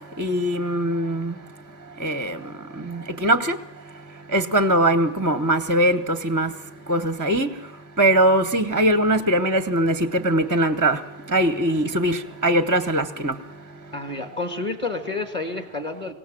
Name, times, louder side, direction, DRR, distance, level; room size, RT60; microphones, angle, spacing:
voice 1, 0.2-1.3 2.0-2.4 2.8-3.6 4.3-6.5 6.9-7.5 8.0-11.0 11.3-13.3, right 1 dB, 20° right, 11 dB, 0.7 m, -21 dB
voice 2, 13.9-16.1, left 3 dB, 25° left, 6 dB, 1.8 m, -29 dB
25.0 x 17.0 x 7.6 m, 0.87 s
omnidirectional pair, 1.2 m